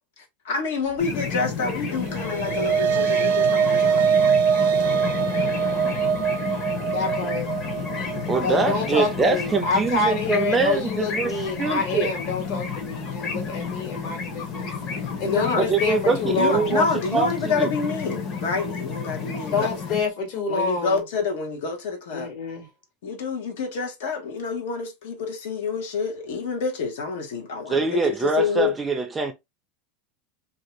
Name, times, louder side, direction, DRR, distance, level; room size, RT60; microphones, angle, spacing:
voice 1, 0.5-4.0 15.2-15.6 16.3-19.7 20.5-22.3 23.0-28.7, left 4 dB, 80° left, 0.9 m, -27 dB
sound 1, 1.0-20.0, left 5 dB, 35° left, 0.8 m, -31 dB
sound 2, 2.0-10.5, right 7 dB, 80° right, 0.5 m, -23 dB
voice 2, 6.9-7.5 8.4-14.7 15.2-16.8 19.5-21.0 22.1-22.7, left 4 dB, 55° left, 1.3 m, -27 dB
voice 3, 8.3-11.3 11.6-12.1 15.6-17.7 27.7-29.3, right 4 dB, 15° right, 0.4 m, -23 dB
2.6 x 2.2 x 2.9 m
supercardioid pair, 150°, 0 cm